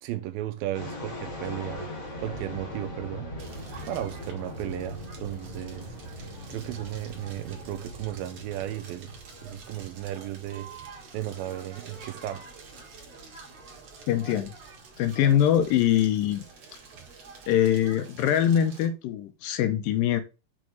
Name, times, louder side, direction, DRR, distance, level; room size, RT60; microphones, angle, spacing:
voice 1, 0.0-1.9 2.2-3.3 3.8-9.1 9.4-10.7 11.1-12.5, right 13 dB, 80° right, 2.4 m, -35 dB
sound 1, 0.7-17.5, left 1 dB, 35° left, 1.1 m, -42 dB
Crackle, 3.4-18.9, right 5 dB, 55° right, 2.4 m, -48 dB
voice 2, 14.1-14.5 15.0-16.5 17.5-20.2, left 10 dB, 80° left, 2.3 m, -23 dB
6.4 x 3.6 x 4.5 m
omnidirectional pair, 4.2 m